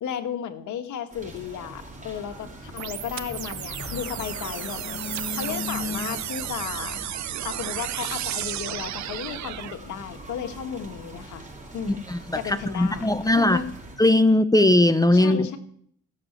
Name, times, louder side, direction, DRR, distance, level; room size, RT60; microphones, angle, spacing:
voice 1, 0.0-7.0 7.4-11.5 11.7-12.0 12.3-13.7 15.1-15.6, left 8 dB, 75° left, 6 dB, 1.8 m, -34 dB
sound 1, 1.1-14.0, right 2 dB, 25° right, 5.2 m, -43 dB
sound 2, 2.8-9.8, right 13 dB, 65° right, 0.7 m, -33 dB
sound 3, 3.2-7.7, left 6 dB, 50° left, 1.8 m, -38 dB
voice 2, 12.1-13.6 14.0-15.5, left 1 dB, 10° left, 11 dB, 0.8 m, -19 dB
16.0 x 7.2 x 8.6 m, 0.63 s
cardioid pair, 90°, 30 cm